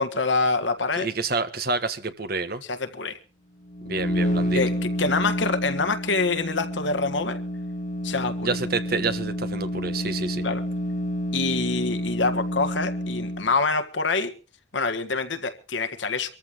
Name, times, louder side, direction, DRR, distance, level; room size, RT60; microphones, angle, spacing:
voice 1, 0.0-1.1 2.7-3.2 4.5-7.4 8.0-8.5 10.4-10.6 11.3-14.3 14.7-16.3, left 3 dB, 75° left, 1.7 m, -26 dB
voice 2, 1.0-2.6 3.8-4.6 8.4-10.5, right 3 dB, 50° right, 1.6 m, -28 dB
sound 1, 3.7-13.6, equal, 40° left, 2.2 m, -29 dB
25.0 x 14.0 x 3.1 m
head